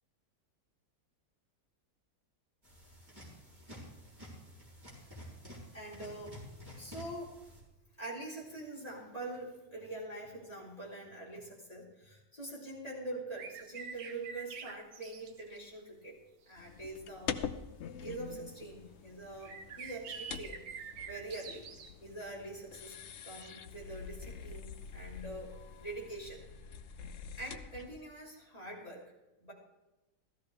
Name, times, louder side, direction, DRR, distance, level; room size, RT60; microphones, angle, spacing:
sound 1, 2.6-7.6, equal, 10° right, 3.8 m, -50 dB
voice 1, 5.7-6.4 6.8-7.4 8.0-16.2 16.5-17.4 18.0-21.6 22.0-22.9 23.2-25.5 25.8-26.4 27.4-29.1 29.4-29.5, right 2 dB, 20° left, -5 dB, 3.8 m, -44 dB
sound 2, 13.3-15.6 16.5-16.6 17.5-17.6 19.4-21.9 23.4-23.6 26.2-26.3, right 6 dB, 65° right, 1.3 m, -46 dB
sound 3, 16.6-28.0, left 7 dB, 65° left, 0.7 m, -45 dB
15.5 x 13.5 x 3.3 m, 1.0 s
omnidirectional pair, 1.8 m